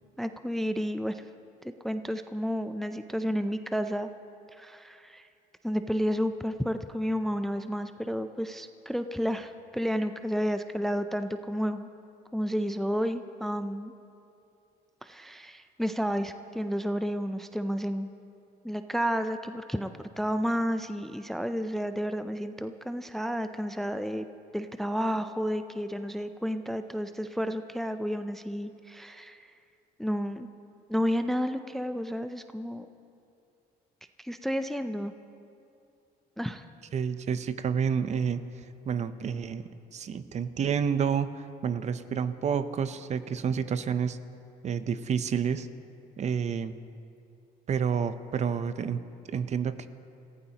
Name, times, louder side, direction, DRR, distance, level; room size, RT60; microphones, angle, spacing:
voice 1, 0.2-1.2 1.8-4.1 4.5-5.2 5.6-11.9 12.3-13.9 15.0-18.1 18.6-19.9 20.2-24.3 24.5-29.5 30.0-30.5 30.9-32.9 34.2-35.1 36.4-36.6, equal, ahead, 9 dB, 0.4 m, -31 dB
voice 2, 36.9-38.4 38.9-41.3 41.6-44.2 44.6-45.7 46.2-46.7 47.7-49.0 49.3-49.9, right 7 dB, 40° right, 12 dB, 0.7 m, -29 dB
27.0 x 15.5 x 2.9 m, 2.6 s
cardioid pair, 110°, 17 cm